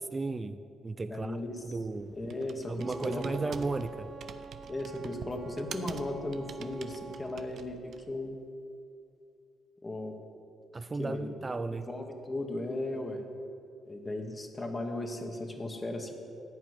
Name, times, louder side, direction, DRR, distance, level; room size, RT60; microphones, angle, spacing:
voice 1, 0.1-1.4 1.6-2.2 2.7-4.1 10.7-11.9, right 3 dB, 25° right, 11 dB, 0.5 m, -34 dB
voice 2, 1.1-1.8 2.1-3.3 4.7-8.4 9.8-10.2 11.0-11.4 11.7-13.3 13.9-16.1, left 1 dB, 25° left, 3 dB, 1.8 m, -36 dB
Computer keyboard, 1.2-8.2, right 6 dB, 65° right, 0.7 m, -48 dB
Wind instrument woodwind instrument, 2.8-7.4, right 3 dB, 45° right, 1.3 m, -47 dB
14.5 x 5.9 x 9.7 m, 2.5 s
cardioid pair, 90°, 0 cm